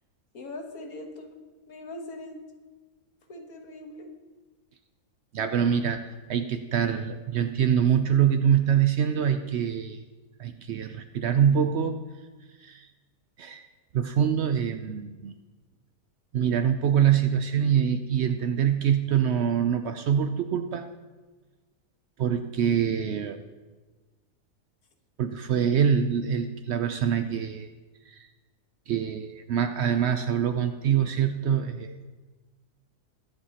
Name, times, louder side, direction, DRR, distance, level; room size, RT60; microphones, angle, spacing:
voice 1, 0.3-1.4 1.7-2.4 3.3-4.1, left 1 dB, 60° left, 3 dB, 1.7 m, -41 dB
voice 2, 5.3-10.0 10.4-12.0 12.6-12.9 13.4-13.6 13.9-15.3 16.3-20.9 22.2-23.4 25.2-27.7 28.1-28.3 28.9-32.0, right 8 dB, 85° right, 7 dB, 0.5 m, -25 dB
22.5 x 7.8 x 2.9 m, 1.3 s
omnidirectional pair, 1.7 m